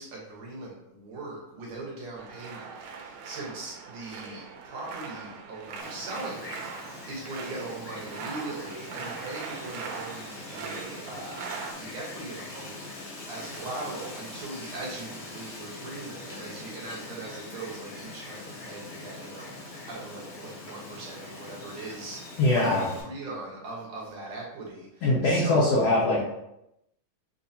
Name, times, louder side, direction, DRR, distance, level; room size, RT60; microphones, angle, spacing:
voice 1, 0.0-25.9, right 2 dB, 65° right, -4 dB, 2.1 m, -40 dB
sound 1, 2.1-11.7, right 5 dB, 85° right, 2.2 m, -41 dB
Wind, 5.8-23.0, left 2 dB, 55° left, 1.3 m, -43 dB
voice 2, 22.4-22.9 25.0-26.2, left 2 dB, 70° left, -5 dB, 1.5 m, -22 dB
6.9 x 2.8 x 2.7 m, 0.85 s
omnidirectional pair, 3.6 m